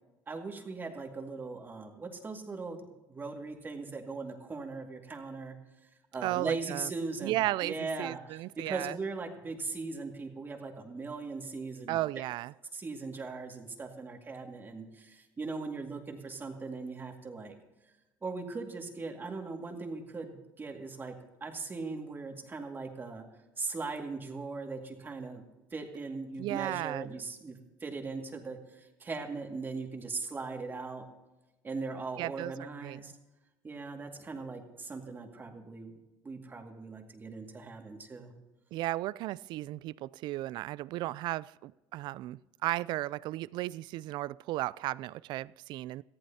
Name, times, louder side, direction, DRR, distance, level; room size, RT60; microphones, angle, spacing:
voice 1, 0.3-5.6 6.1-12.0 12.7-17.6 18.2-23.3 23.6-25.4 25.7-31.1 31.6-33.1 33.6-36.0 36.2-38.3, right 3 dB, 25° right, 3 dB, 2.1 m, -39 dB
voice 2, 6.2-6.9 7.2-9.0 11.9-12.5 26.4-27.1 32.2-32.5 32.8-33.0 38.7-46.0, right 16 dB, 65° right, 21 dB, 0.3 m, -35 dB
19.0 x 14.0 x 2.8 m, 1.1 s
cardioid pair, 120°, 8 cm